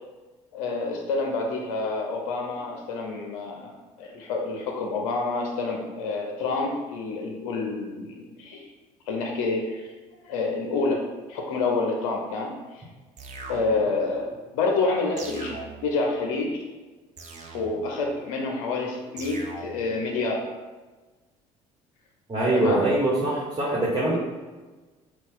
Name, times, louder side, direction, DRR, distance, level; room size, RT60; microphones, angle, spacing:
voice 1, 0.5-3.7 4.0-8.7 9.1-9.9 10.2-11.0 11.3-12.8 13.5-16.6 17.5-20.4 22.5-22.8 24.1-24.2, left 3 dB, 75° left, 1 dB, 0.7 m, -28 dB
sound 1, 13.2-14.1 15.2-16.1 17.2-18.1 19.2-20.0, right 3 dB, 40° right, 0.7 m, -40 dB
voice 2, 22.3-24.2, right 2 dB, 25° right, -6 dB, 1.3 m, -23 dB
4.2 x 2.4 x 3.8 m, 1.3 s
hypercardioid pair, 60°, 17 cm